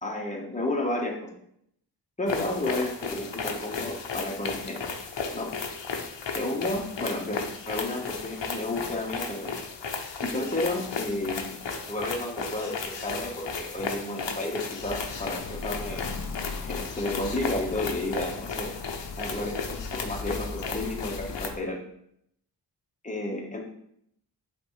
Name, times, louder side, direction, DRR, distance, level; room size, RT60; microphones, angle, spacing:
voice 1, 0.0-1.2 2.2-4.8 5.3-5.5 6.3-9.5 10.2-11.6 11.9-16.1 16.6-18.7 19.2-21.8 23.0-23.6, left 1 dB, 15° left, 0 dB, 1.3 m, -32 dB
sound 1, 2.3-21.5, left 5 dB, 75° left, 0.8 m, -35 dB
Alarm, 14.8-21.6, left 4 dB, 45° left, 0.6 m, -38 dB
8.3 x 3.5 x 3.2 m, 0.73 s
wide cardioid pair, 85°, 43 cm